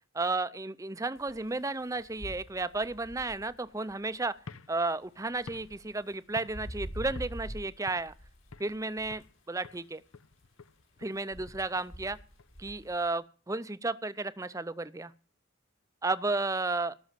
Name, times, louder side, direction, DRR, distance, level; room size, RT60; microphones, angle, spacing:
voice 1, 0.1-4.3 4.7-8.1 8.6-10.0 11.0-12.2 12.6-15.1 16.0-17.0, right 3 dB, 15° right, 15 dB, 0.5 m, -33 dB
sound 1, 1.2-1.4 1.9-3.9 5.3-6.0 6.5-7.6 8.0-9.3 11.3-13.1, equal, 70° left, 5.7 m, -44 dB
sound 2, 4.4-6.8 7.2-7.5 7.9-8.8 9.1-9.4 9.6-12.8, left 3 dB, 85° left, 0.7 m, -51 dB
17.5 x 6.3 x 7.4 m, 0.39 s
head